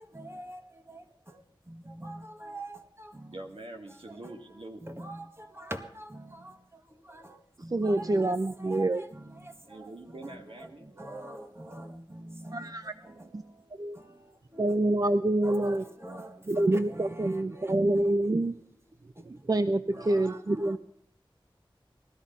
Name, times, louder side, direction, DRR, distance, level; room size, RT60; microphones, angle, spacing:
voice 1, 0.0-3.4 4.1-4.3 4.8-18.2 19.1-19.4 19.9-20.8, right 1 dB, 30° right, 1.6 m, -45 dB
voice 2, 3.3-4.8 9.6-10.9, right 2 dB, 85° right, 2.2 m, -44 dB
voice 3, 7.7-9.0 12.5-12.9 13.3-13.4 13.8-14.0 14.6-15.8 16.5-18.6 19.3-20.8, right 2 dB, 45° right, 0.6 m, -27 dB
19.0 x 13.5 x 5.4 m
wide cardioid pair, 45°, 9 cm